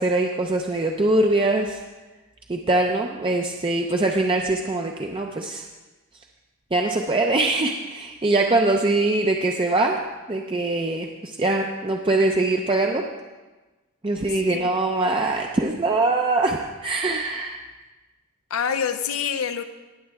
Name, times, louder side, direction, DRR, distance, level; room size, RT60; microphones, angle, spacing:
voice 1, 0.0-1.8 2.5-5.6 6.7-10.0 10.3-13.0 14.0-17.6, right 2 dB, 25° right, 2 dB, 0.6 m, -22 dB
voice 2, 14.3-14.7 18.5-19.6, left 7 dB, 90° left, 9 dB, 0.6 m, -26 dB
18.5 x 7.6 x 3.5 m, 1.2 s
head